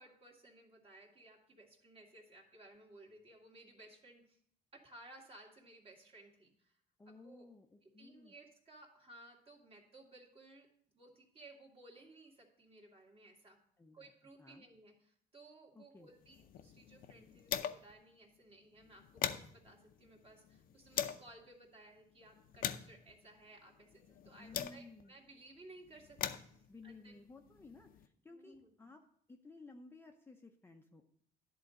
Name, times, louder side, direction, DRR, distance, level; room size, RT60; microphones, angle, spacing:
voice 1, 0.0-4.4 4.7-6.8 7.1-7.5 7.8-10.7 10.9-13.6 13.9-27.1 28.3-28.9, right 2 dB, 35° right, 1 dB, 2.1 m, -59 dB
voice 2, 7.0-8.3 13.8-14.1 14.4-14.7 15.7-16.1 24.4-25.1 26.7-29.0 29.3-31.1, left 3 dB, 15° left, 4 dB, 0.6 m, -56 dB
sound 1, 16.2-18.0 18.3-18.4 18.8-21.3 21.9-25.1 25.8-28.1, left 10 dB, 55° left, 0.6 m, -43 dB
10.5 x 3.9 x 6.3 m, 0.66 s
cardioid pair, 110°, 17 cm